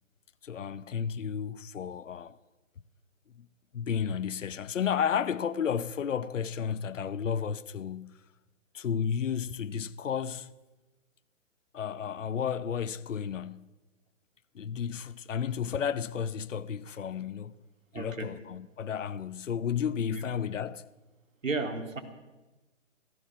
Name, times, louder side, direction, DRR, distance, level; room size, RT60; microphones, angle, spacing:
voice 1, 0.4-2.4 3.3-3.5 3.7-8.2 8.7-10.5 11.7-13.7 14.5-17.6 17.9-20.9, left 7 dB, 75° left, 0.8 m, -32 dB
voice 2, 17.9-18.3 20.1-20.2 21.4-22.0, right 3 dB, 85° right, 2.6 m, -33 dB
15.0 x 15.0 x 5.9 m
hypercardioid pair, 155°, 38 cm